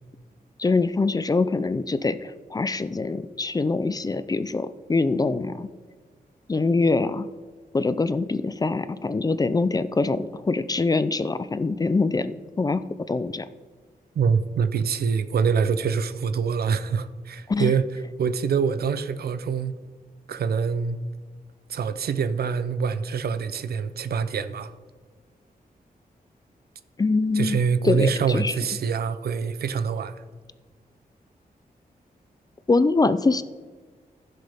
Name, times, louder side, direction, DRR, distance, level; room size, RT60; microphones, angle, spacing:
voice 1, 0.6-5.7 6.5-7.3 7.7-13.5 17.5-17.7 27.0-28.5 32.7-33.4, left 3 dB, 25° left, 14 dB, 0.4 m, -24 dB
voice 2, 14.2-17.9 18.2-19.8 20.3-21.0 21.7-24.7 27.3-30.1, right 6 dB, 80° right, 12 dB, 0.6 m, -25 dB
15.0 x 6.7 x 3.5 m, 1.4 s
wide cardioid pair, 125°, 16 cm